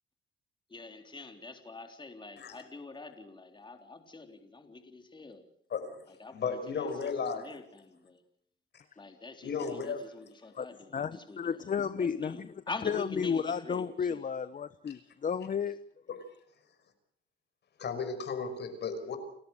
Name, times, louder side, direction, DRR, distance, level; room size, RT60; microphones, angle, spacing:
voice 1, 0.7-5.4 6.2-8.2 9.0-14.2, left 3 dB, 25° left, 5 dB, 3.8 m, -45 dB
voice 2, 5.7-6.1 6.3-7.5 9.4-10.0 14.9-15.0 16.1-16.2 17.8-19.2, left 5 dB, 60° left, 8 dB, 5.7 m, -35 dB
voice 3, 10.9-15.8, left 7 dB, 40° left, 13 dB, 1.0 m, -33 dB
30.0 x 13.5 x 8.0 m, 0.67 s
cardioid pair, 90°, 20 cm